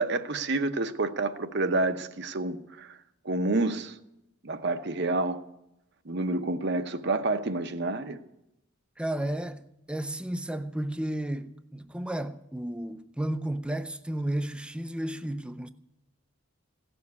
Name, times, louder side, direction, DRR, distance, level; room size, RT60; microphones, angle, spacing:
voice 1, 0.0-3.0 3.2-4.0 4.4-5.4 6.1-8.2, right 2 dB, 50° right, 0.8 m, -28 dB
voice 2, 9.0-15.7, right 1 dB, 5° right, 0.5 m, -33 dB
16.5 x 7.1 x 9.5 m
head